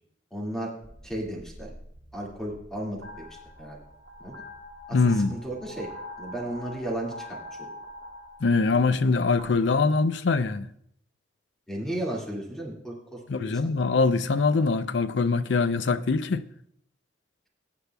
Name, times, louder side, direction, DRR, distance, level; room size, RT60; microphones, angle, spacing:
voice 1, 0.3-0.7 1.0-1.7 2.1-3.3 3.6-3.8 4.2-4.4 4.9-5.9 6.2-7.4 11.7-13.5, right 1 dB, 5° left, 2.1 m, -34 dB
sound 1, 0.8-9.7, left 1 dB, 65° right, 1.5 m, -44 dB
voice 2, 4.9-5.4 8.4-10.7 13.3-16.4, left 4 dB, 75° left, 0.5 m, -23 dB
21.0 x 9.8 x 2.3 m
head